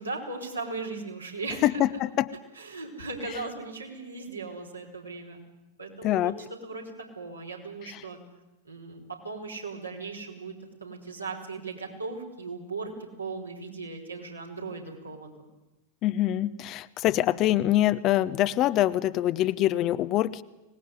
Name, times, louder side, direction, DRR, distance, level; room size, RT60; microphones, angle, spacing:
voice 1, 0.0-1.8 2.6-5.4 5.8-6.3 6.6-8.2 8.6-10.5 10.8-15.5, right 3 dB, 80° right, 0 dB, 5.2 m, -38 dB
voice 2, 1.6-2.3 6.0-6.4 7.9-8.0 16.0-20.4, left 14 dB, 35° left, 15 dB, 1.0 m, -24 dB
25.0 x 19.5 x 9.6 m, 1.0 s
figure-of-eight pair, 90°, 0 cm